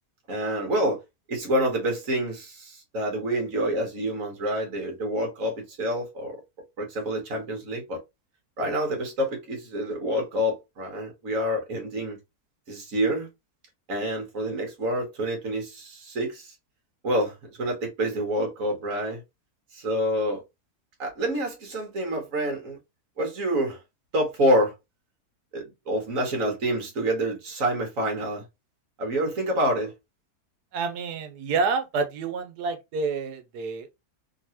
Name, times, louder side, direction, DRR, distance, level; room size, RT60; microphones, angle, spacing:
voice 1, 0.3-1.0 1.3-6.4 6.8-8.0 8.6-12.2 12.7-13.3 13.9-16.5 17.0-19.2 19.7-20.4 21.0-22.8 23.2-23.8 24.1-24.7 25.5-28.4 29.0-29.9, equal, 55° right, 1.7 m, -27 dB
voice 2, 30.7-33.9, right 4 dB, 90° right, 1.3 m, -28 dB
3.7 x 2.8 x 2.9 m
omnidirectional pair, 1.7 m